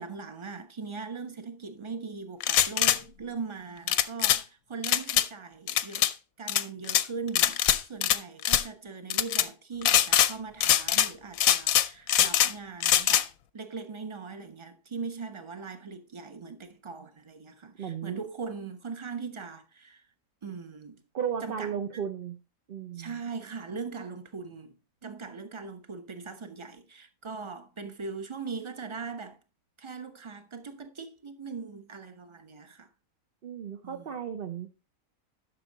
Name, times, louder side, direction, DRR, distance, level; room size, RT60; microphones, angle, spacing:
voice 1, 0.0-6.1 6.4-13.3 13.5-20.1 20.4-21.0 21.4-21.7 22.9-24.8 25.0-29.4 29.8-32.9 33.8-34.2, right 5 dB, 20° right, 1.0 m, -40 dB
sound 1, 2.4-3.0 3.9-4.4 4.8-5.3 5.7-6.1 6.5-7.0 7.4-8.2 8.4-8.6 9.1-9.5 9.8-10.3 10.6-11.1 11.4-12.5 12.8-13.2, left 11 dB, 70° left, 1.0 m, -23 dB
voice 2, 17.8-18.3 21.1-22.4 22.7-23.2 33.4-34.8, right 8 dB, 45° right, 0.8 m, -35 dB
11.0 x 6.3 x 4.0 m
omnidirectional pair, 1.6 m